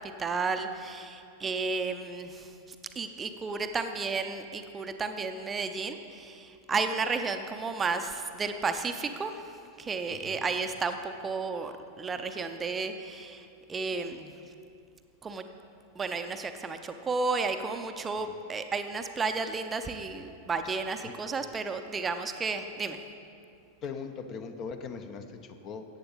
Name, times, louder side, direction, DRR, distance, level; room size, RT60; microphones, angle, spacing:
voice 1, 0.0-2.5 3.0-14.3 15.2-15.5 16.0-23.0, right 4 dB, 20° right, 8 dB, 0.5 m, -33 dB
voice 2, 10.1-10.4 18.2-18.4 21.0-21.2 23.8-25.9, left 5 dB, 35° left, 8 dB, 0.7 m, -40 dB
14.5 x 8.8 x 3.9 m, 2.5 s
figure-of-eight pair, 90°, 0 cm